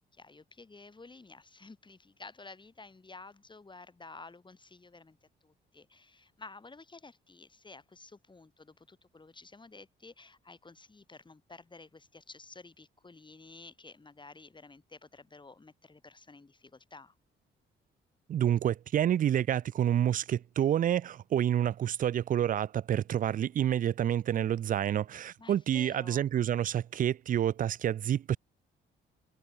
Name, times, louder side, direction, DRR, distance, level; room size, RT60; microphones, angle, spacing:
voice 1, 0.1-5.2 5.4-17.2 25.4-26.3, left 3 dB, 25° left, 7.5 m, -52 dB
voice 2, 18.3-28.4, right 10 dB, 45° right, 0.4 m, -28 dB
cardioid pair, 90°, 20 cm